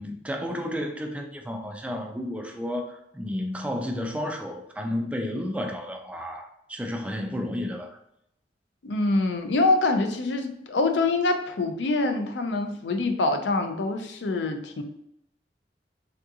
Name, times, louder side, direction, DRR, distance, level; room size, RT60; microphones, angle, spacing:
voice 1, 0.0-8.0, left 1 dB, 5° right, 3 dB, 0.3 m, -32 dB
voice 2, 8.8-14.8, left 2 dB, 80° left, 6 dB, 0.4 m, -25 dB
3.6 x 2.4 x 2.7 m, 0.76 s
head